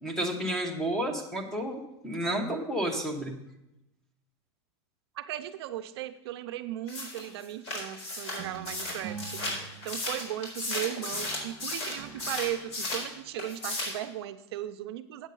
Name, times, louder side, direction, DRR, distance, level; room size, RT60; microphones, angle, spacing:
voice 1, 0.0-3.3, right 1 dB, 5° left, 4 dB, 1.0 m, -31 dB
voice 2, 5.2-15.3, right 13 dB, 65° right, 10 dB, 0.5 m, -37 dB
sound 1, 6.9-13.1 13.4-14.0, left 2 dB, 80° left, 4.2 m, -35 dB
sound 2, 8.4-10.7 11.1-13.4, right 7 dB, 30° right, 1.1 m, -46 dB
8.5 x 7.2 x 5.4 m, 0.90 s
supercardioid pair, 165°, 14 cm